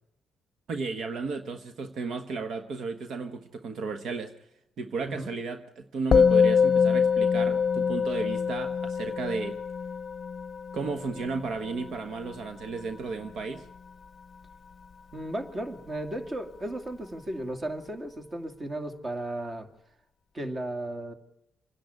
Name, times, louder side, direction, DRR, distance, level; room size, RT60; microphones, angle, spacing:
voice 1, 0.7-4.3 4.8-9.6 10.7-13.6, right 4 dB, 65° right, 8 dB, 1.3 m, -34 dB
Musical instrument, 6.1-15.6, left 6 dB, 45° left, 0.7 m, -26 dB
voice 2, 15.1-19.7 20.3-21.1, right 1 dB, 30° right, 6 dB, 2.5 m, -35 dB
26.5 x 10.5 x 9.6 m, 0.82 s
cardioid pair, 90°, 0 cm